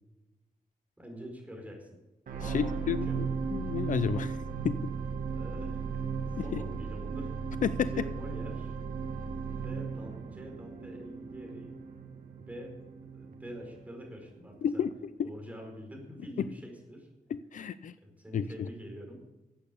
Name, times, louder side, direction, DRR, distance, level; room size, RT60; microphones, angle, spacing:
voice 1, 1.0-1.9 2.4-3.3 5.3-5.9 6.4-7.4 7.8-8.7 9.5-11.7 12.4-12.8 13.1-14.8 15.2-17.1 18.0-19.3, equal, 10° right, 1 dB, 4.9 m, -45 dB
sound 1, 2.3-14.6 15.2-15.3, right 5 dB, 70° right, 1.9 m, -36 dB
voice 2, 2.4-4.4 4.6-4.9 6.5-6.6 7.6-7.9 14.6-14.9 15.2-15.3 17.3-17.9 18.3-18.5, left 8 dB, 60° left, 14 dB, 0.5 m, -31 dB
14.0 x 8.7 x 8.5 m, 1.0 s
wide cardioid pair, 140°, 15 cm